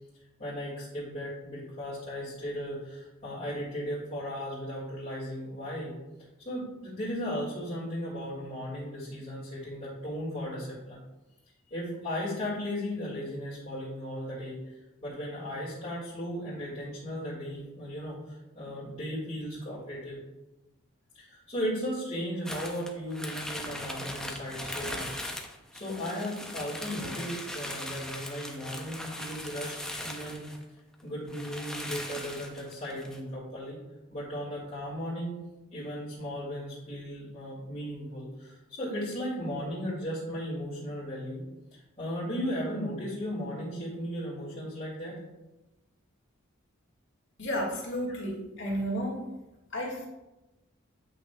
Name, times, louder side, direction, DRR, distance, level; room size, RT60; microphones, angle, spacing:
voice 1, 0.4-5.9 6.4-11.0 11.7-14.8 15.0-20.2 21.1-25.2 25.7-29.8 30.0-30.5 31.0-33.8 34.1-35.3 35.7-41.4 41.7-45.2 48.1-48.2, equal, 35° left, -9 dB, 1.8 m, -36 dB
sound 1, 22.5-30.6 31.0-31.1 31.3-33.2, left 1 dB, 5° left, 0.5 m, -39 dB
voice 2, 47.4-49.2 49.7-50.1, equal, 55° left, -2 dB, 1.7 m, -32 dB
8.2 x 5.6 x 2.2 m, 1.0 s
head